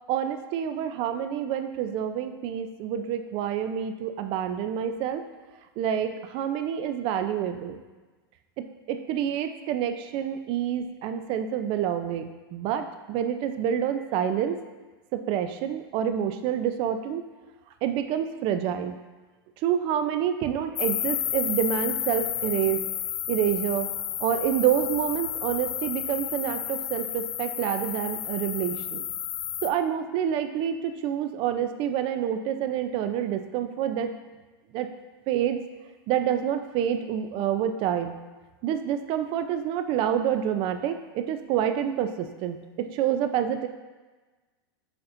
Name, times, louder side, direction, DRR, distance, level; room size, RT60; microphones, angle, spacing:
voice 1, 0.1-5.2 5.8-7.8 8.6-14.6 15.1-17.2 17.8-18.9 19.6-22.8 23.3-23.9 24.2-29.0 29.6-34.1 34.7-34.9 35.3-35.6 36.1-38.1 38.6-43.7, right 9 dB, 45° right, 8 dB, 0.6 m, -28 dB
sound 1, 20.8-29.7, left 10 dB, 85° left, 0.4 m, -31 dB
11.5 x 4.2 x 2.6 m, 1.3 s
hypercardioid pair, 120°, 13 cm